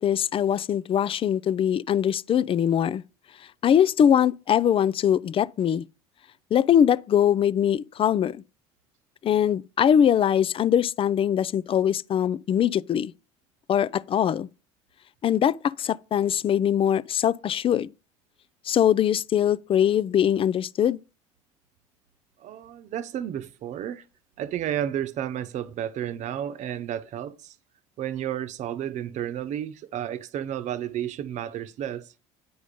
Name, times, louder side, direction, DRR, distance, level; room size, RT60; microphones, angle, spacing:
voice 1, 0.0-3.0 3.6-5.8 6.5-8.4 9.2-13.1 13.7-14.5 15.2-17.9 18.7-21.0, left 9 dB, 40° left, 0.5 m, -22 dB
voice 2, 22.4-24.0 24.4-27.5 28.0-32.1, right 10 dB, 55° right, 0.9 m, -32 dB
9.5 x 5.0 x 5.2 m
supercardioid pair, 80°, 14 cm